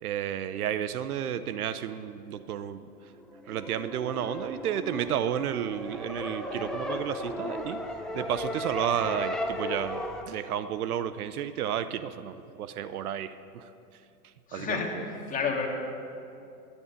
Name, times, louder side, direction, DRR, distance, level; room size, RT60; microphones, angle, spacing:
voice 1, 0.0-3.1 3.5-7.8 8.1-15.0, right 9 dB, 70° right, 13 dB, 0.8 m, -32 dB
sound 1, 3.1-10.2, left 1 dB, ahead, 0.6 m, -35 dB
voice 2, 14.5-14.9 15.3-15.7, left 6 dB, 15° left, 0 dB, 2.0 m, -29 dB
12.5 x 10.0 x 8.4 m, 2.5 s
hypercardioid pair, 130°, 46 cm